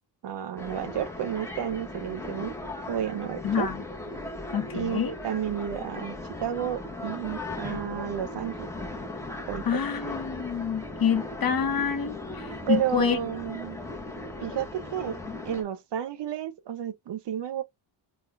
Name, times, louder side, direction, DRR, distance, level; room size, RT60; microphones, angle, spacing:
voice 1, 0.2-2.6 2.9-3.7 4.7-8.7 9.5-9.8 12.7-13.8 14.4-15.2 15.4-17.6, right 10 dB, 60° right, 0.7 m, -31 dB
sound 1, 0.6-15.6, left 2 dB, 5° left, 0.8 m, -38 dB
voice 2, 3.4-3.8 4.5-5.1 7.6-7.8 9.7-13.2, left 7 dB, 50° left, 0.9 m, -27 dB
3.5 x 2.3 x 2.4 m
cardioid pair, 90°, 47 cm